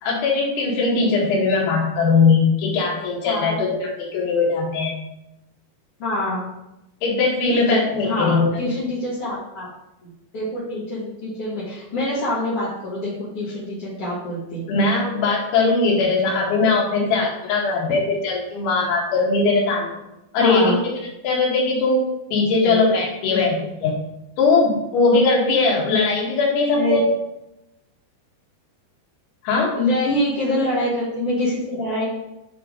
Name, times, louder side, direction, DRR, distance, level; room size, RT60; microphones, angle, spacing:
voice 1, 0.0-5.0 7.0-8.6 14.7-19.9 20.3-20.7 21.2-22.0 22.3-24.0 24.4-27.1 29.4-29.8, left 3 dB, 85° left, -3 dB, 4.3 m, -20 dB
voice 2, 3.2-3.6 6.0-6.5 7.5-9.7 10.0-14.6 20.4-20.8 22.6-22.8 23.3-23.4 26.7-27.0 29.8-32.1, left 1 dB, 50° left, -8 dB, 1.8 m, -25 dB
9.3 x 3.8 x 5.0 m, 0.89 s
omnidirectional pair, 5.2 m